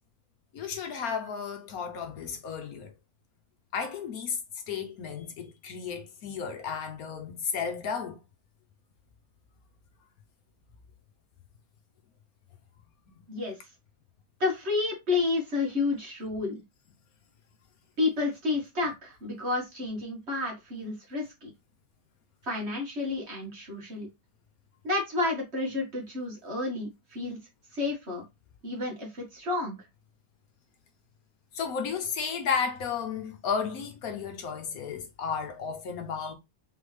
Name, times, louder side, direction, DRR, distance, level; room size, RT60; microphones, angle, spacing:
voice 1, 0.5-2.9 3.7-4.4 4.7-8.2 31.5-36.3, left 6 dB, 70° left, 1.2 m, -33 dB
voice 2, 14.4-16.6 18.0-21.5 22.4-24.1 24.8-27.4 27.7-28.2 28.6-29.8, left 3 dB, 40° right, 1.9 m, -30 dB
3.9 x 3.6 x 3.2 m
omnidirectional pair, 1.7 m